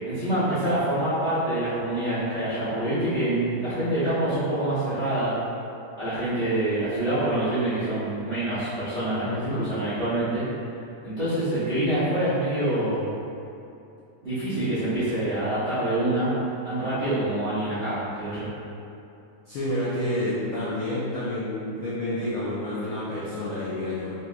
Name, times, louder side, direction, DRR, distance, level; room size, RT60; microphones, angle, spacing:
voice 1, 0.1-5.4 6.0-9.2 9.5-10.4 11.0-13.1 14.2-16.3 16.6-18.5, right 1 dB, 45° right, -15 dB, 0.7 m, -26 dB
voice 2, 9.2-9.6 19.5-24.1, left 1 dB, 85° left, -10 dB, 1.2 m, -29 dB
4.5 x 3.9 x 2.3 m, 2.8 s
omnidirectional pair, 3.4 m